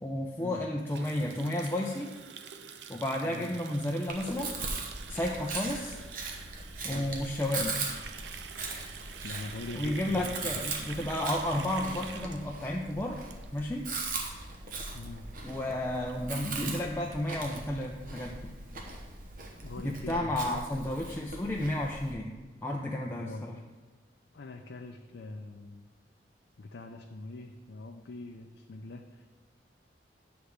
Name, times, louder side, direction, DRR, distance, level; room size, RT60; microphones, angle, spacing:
voice 1, 0.0-2.1 2.9-4.5 5.1-6.0 6.8-7.8 9.7-13.2 13.5-13.9 15.4-18.5 19.8-23.6, left 1 dB, 10° left, -1 dB, 0.4 m, -32 dB
Water tap faucet, 0.8-13.9 14.1-14.4 14.7-15.0 15.3-15.4 15.6-15.7 16.1-16.2 16.4-17.5, right 7 dB, 75° right, 0.5 m, -47 dB
Chewing mastication, 4.1-22.1, right 3 dB, 50° right, 1.0 m, -40 dB
voice 2, 9.2-10.6 12.7-12.8 14.9-15.3 19.6-20.6 23.2-23.5 24.3-25.9 26.6-29.4, left 2 dB, 80° left, 3 dB, 0.5 m, -43 dB
9.7 x 3.5 x 6.4 m, 1.3 s
head